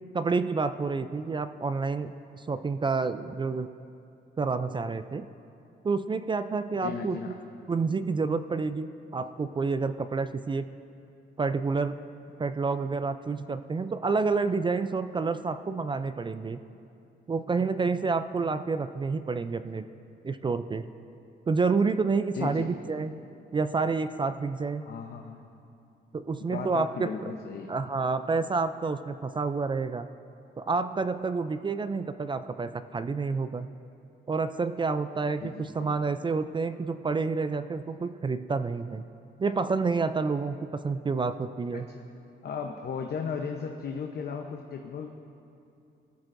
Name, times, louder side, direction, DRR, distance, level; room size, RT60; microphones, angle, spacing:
voice 1, 0.1-3.7 4.4-5.3 5.8-7.2 7.7-10.7 11.4-12.0 12.4-16.6 17.3-19.9 20.2-20.9 21.5-23.1 23.5-24.8 26.1-27.3 27.7-30.1 30.6-33.7 34.3-39.0 39.4-40.6 40.8-41.9, right 4 dB, 25° right, 11 dB, 0.4 m, -29 dB
voice 2, 6.8-7.4 22.3-22.7 24.8-25.4 26.4-27.7 35.4-36.0 41.7-42.1 42.4-45.1, left 6 dB, 55° left, 3 dB, 0.8 m, -36 dB
18.0 x 14.0 x 2.6 m, 2.6 s
cardioid pair, 90°, 20 cm